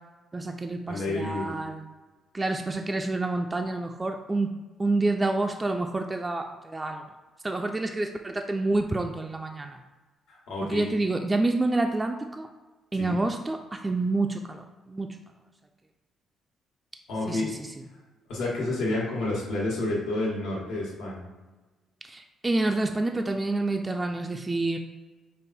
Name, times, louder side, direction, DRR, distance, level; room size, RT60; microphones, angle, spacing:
voice 1, 0.3-1.8 2.3-4.5 4.8-7.0 7.4-9.8 10.6-12.5 12.9-15.2 17.3-17.5 22.0-24.8, right 2 dB, 20° right, 4 dB, 0.3 m, -28 dB
voice 2, 0.9-1.6 10.3-10.9 13.0-13.2 17.1-17.5 18.3-21.3, left 2 dB, 85° left, -5 dB, 1.4 m, -30 dB
5.3 x 2.1 x 4.1 m, 1.2 s
cardioid pair, 90°, 0 cm